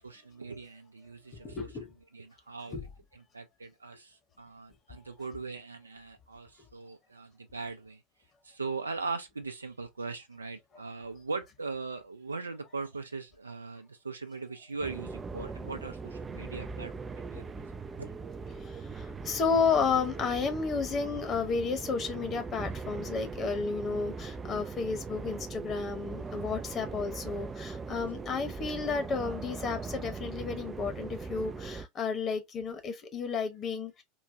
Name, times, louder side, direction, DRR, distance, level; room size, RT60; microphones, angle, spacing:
voice 1, 0.0-1.7 2.1-2.8 3.1-8.0 8.4-17.6 18.0-18.1, right 4 dB, 85° right, 0.6 m, -40 dB
voice 2, 1.3-1.9 2.7-2.8 18.6-34.0, left 5 dB, 35° left, 1.0 m, -32 dB
sound 1, 14.8-31.9, right 4 dB, 20° right, 0.3 m, -40 dB
4.0 x 2.2 x 2.7 m
figure-of-eight pair, 80°, 0 cm